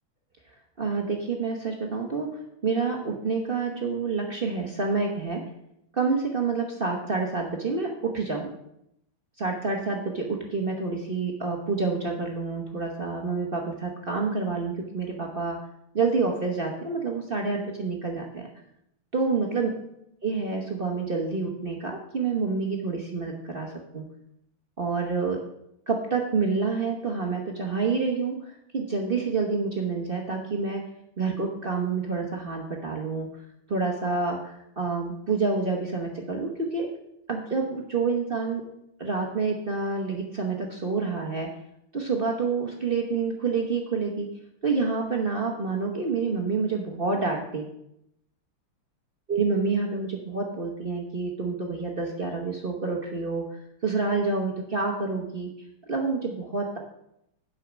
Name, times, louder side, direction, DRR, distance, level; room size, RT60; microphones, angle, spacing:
voice 1, 0.8-2.3 2.6-5.4 5.9-8.5 9.4-15.6 15.9-18.4 19.1-19.7 20.2-24.0 24.8-25.4 25.9-30.8 31.2-33.3 33.7-36.9 37.3-38.6 39.0-41.5 41.9-44.3 44.6-47.6 49.3-55.5 55.9-56.8, right 4 dB, 40° right, 1 dB, 0.7 m, -28 dB
8.3 x 5.7 x 6.0 m, 0.78 s
omnidirectional pair, 2.4 m